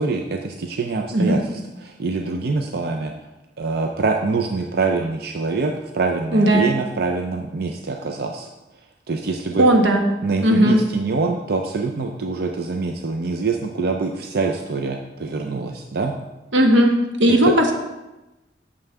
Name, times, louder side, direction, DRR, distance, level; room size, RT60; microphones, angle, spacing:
voice 1, 0.0-3.1 3.6-8.5 9.1-9.7 10.2-16.2 17.5-17.6, right 3 dB, 55° right, 3 dB, 0.5 m, -25 dB
voice 2, 6.3-6.6 9.6-10.0 10.4-10.8 16.5-17.7, right 1 dB, 85° right, 2 dB, 1.2 m, -16 dB
9.1 x 6.7 x 3.5 m, 1.0 s
head